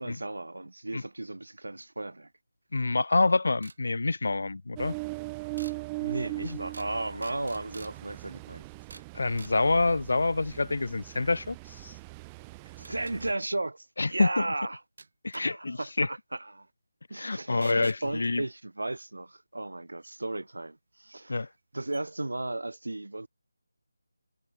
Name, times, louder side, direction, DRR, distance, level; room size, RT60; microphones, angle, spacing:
voice 1, 0.0-2.3 5.9-9.0 12.7-14.8 15.3-16.7 17.1-21.5 21.7-23.3, right 2 dB, 90° right, 3.4 m, -35 dB
voice 2, 2.7-4.9 6.4-6.6 9.1-11.9 14.0-14.4 15.2-16.1 17.2-18.4 21.3-21.5, left 3 dB, 65° left, 0.4 m, -27 dB
sound 1, 3.6-3.8 5.6-5.8 6.7-6.9 7.2-7.9 8.9-9.1 9.4-9.5 11.8-11.9 12.8-13.2 15.0-15.4 17.6-18.0 20.0-20.1 21.1-21.2 21.6-21.7 21.9-22.0, right 3 dB, 55° right, 4.5 m, -48 dB
Ocean, 4.8-13.3, right 26 dB, 10° right, 1.0 m, -40 dB
figure-of-eight pair, 170°, 0 cm